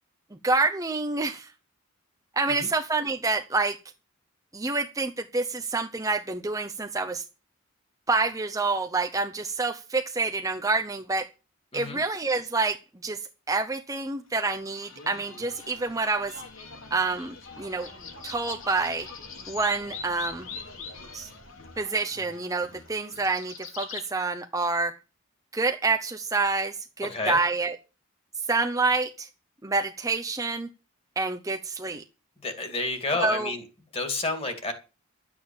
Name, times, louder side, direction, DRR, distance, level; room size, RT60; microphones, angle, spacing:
voice 1, 0.4-1.5 2.4-3.8 4.5-7.2 8.1-11.3 11.7-13.2 13.5-16.4 16.9-17.9 18.2-19.1 19.5-20.5 21.1-21.3 21.8-24.9 25.5-27.7 28.5-29.3 29.6-30.7 31.2-32.0 33.1-33.5, right 3 dB, 15° right, 0.7 m, -27 dB
sound 1, 14.4-24.1, left 4 dB, 70° left, 2.8 m, -43 dB
voice 2, 32.4-33.6 33.9-34.7, left 2 dB, 25° left, 2.5 m, -30 dB
12.0 x 8.8 x 7.2 m
head